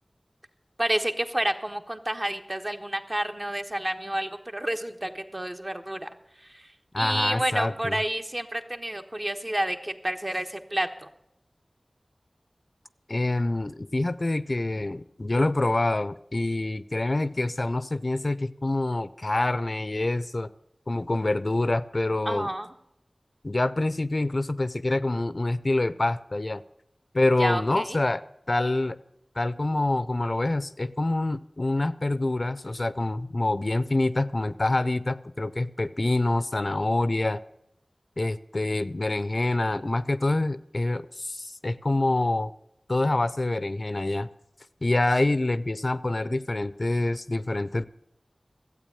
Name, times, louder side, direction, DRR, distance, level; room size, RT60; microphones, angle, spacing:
voice 1, 0.8-6.1 6.5-6.7 7.0-11.1 22.3-22.7 27.4-28.0, right 1 dB, 40° right, 5 dB, 1.2 m, -30 dB
voice 2, 6.9-8.0 13.1-20.5 20.9-22.5 23.4-26.6 27.1-28.2 28.5-29.0 29.4-37.4 38.2-42.5 42.9-44.3 44.8-47.8, left 2 dB, 55° left, 15 dB, 0.5 m, -26 dB
12.5 x 8.2 x 8.5 m, 0.78 s
wide cardioid pair, 40°, 0 cm